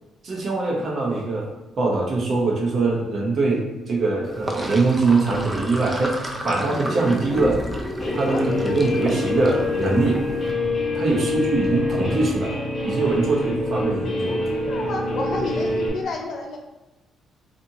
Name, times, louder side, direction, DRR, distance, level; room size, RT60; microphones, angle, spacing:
voice 1, 0.2-1.5 1.8-7.6 8.1-10.2 10.9-12.6 12.8-14.5, right 3 dB, 55° right, -2 dB, 0.7 m, -22 dB
Sink (filling or washing), 4.2-10.5, equal, 15° right, 0.4 m, -31 dB
Guitar, 8.0-15.9, left 2 dB, 30° left, 1.1 m, -26 dB
voice 2, 14.7-16.6, left 2 dB, 65° left, 0 dB, 0.5 m, -30 dB
2.7 x 2.5 x 2.7 m, 1.0 s
cardioid pair, 90°, 0 cm